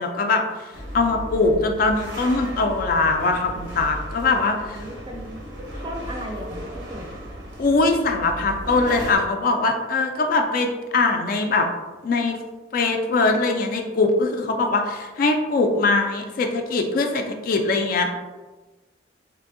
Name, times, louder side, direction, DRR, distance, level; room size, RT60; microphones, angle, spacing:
voice 1, 0.0-4.8 7.6-11.7 12.0-12.4 12.7-18.1, left 3 dB, 50° left, 4 dB, 0.3 m, -22 dB
sound 1, 0.7-9.2, equal, 80° right, 0.8 m, -35 dB
voice 2, 4.7-5.4 5.8-7.1, equal, 25° right, 1 dB, 0.4 m, -35 dB
3.2 x 2.6 x 2.5 m, 1.3 s
head